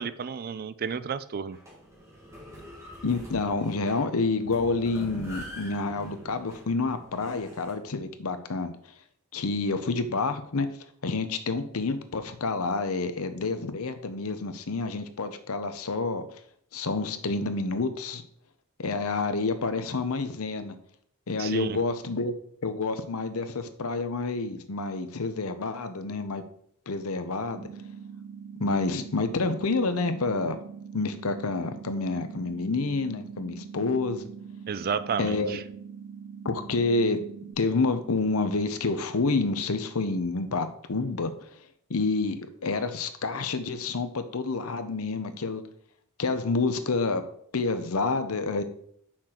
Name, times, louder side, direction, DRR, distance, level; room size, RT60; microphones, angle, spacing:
voice 1, 0.0-1.6 21.4-21.8 34.7-35.6, right 6 dB, 45° right, 14 dB, 0.4 m, -32 dB
sound 1, 1.5-7.7, equal, 15° right, 1.8 m, -45 dB
voice 2, 3.0-8.8 9.3-10.7 11.0-16.2 16.7-18.2 18.8-20.8 21.3-22.3 22.6-26.4 26.9-27.7 28.6-30.6 30.9-34.3 35.2-35.6 36.4-37.2 37.6-41.6 41.9-45.6 46.2-47.2 47.5-48.6, left 3 dB, 75° left, 10 dB, 0.8 m, -28 dB
sound 2, 27.5-37.5, right 6 dB, 65° right, 0.9 m, -43 dB
6.5 x 5.9 x 4.4 m, 0.65 s
head